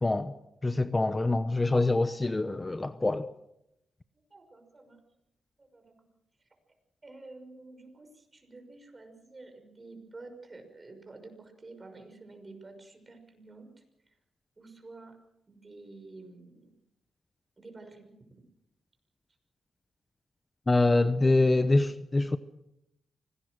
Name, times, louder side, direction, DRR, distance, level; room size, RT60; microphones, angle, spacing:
voice 1, 0.0-0.3 0.6-3.3 20.7-22.4, left 2 dB, 25° left, 0.9 m, -25 dB
voice 2, 4.1-5.0 5.6-6.1 6.4-6.5 7.0-13.7 14.0-14.2 14.6-15.2 15.5-16.7 17.6-18.4, right 3 dB, 30° right, 6.0 m, -50 dB
25.5 x 18.5 x 6.3 m
cardioid pair, 70°, 0 cm